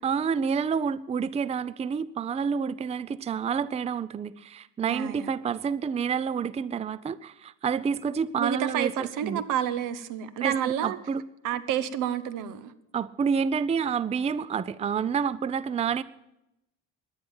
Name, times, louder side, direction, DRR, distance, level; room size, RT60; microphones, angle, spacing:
voice 1, 0.0-9.4 10.4-11.2 12.9-16.0, right 6 dB, 20° right, 19 dB, 0.4 m, -28 dB
voice 2, 4.8-5.3 8.4-11.0 11.4-12.7, right 9 dB, 75° right, 15 dB, 1.0 m, -29 dB
11.0 x 9.6 x 8.6 m, 0.87 s
supercardioid pair, 85°, 32 cm